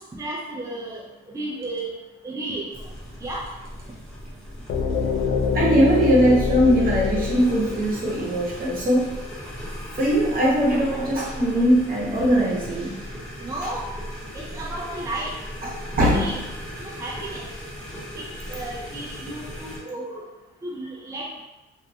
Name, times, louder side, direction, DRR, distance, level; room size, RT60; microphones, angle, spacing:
voice 1, 0.1-1.0 1.3-1.9 2.2-2.9 3.2-3.4 13.4-13.9 14.3-15.3 16.1-16.4 16.8-17.4 18.1-20.2 20.6-21.4, right 2 dB, 15° right, -3 dB, 0.4 m, -33 dB
sound 1, 2.7-19.8, equal, 5° left, 0.8 m, -38 dB
sound 2, 4.7-8.6, left 5 dB, 70° left, 0.5 m, -25 dB
voice 2, 5.5-9.1 9.9-13.0 15.6-15.7 16.0-16.3, equal, 45° right, -5 dB, 0.9 m, -20 dB
2.5 x 2.1 x 2.6 m, 1.0 s
cardioid pair, 90°, 20 cm